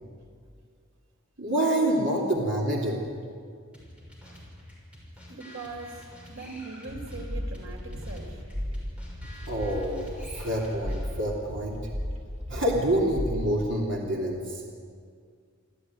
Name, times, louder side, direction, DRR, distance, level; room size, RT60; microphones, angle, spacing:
voice 1, 1.4-3.1 9.5-11.9 12.5-14.6, right 1 dB, 60° right, -2 dB, 3.1 m, -27 dB
sound 1, 3.7-11.4, left 1 dB, 5° right, 6.0 m, -48 dB
voice 2, 5.3-8.4, right 3 dB, 85° right, 3 dB, 3.9 m, -41 dB
sound 2, 6.9-13.6, equal, 35° right, 2.9 m, -35 dB
27.0 x 14.5 x 9.5 m, 2.1 s
head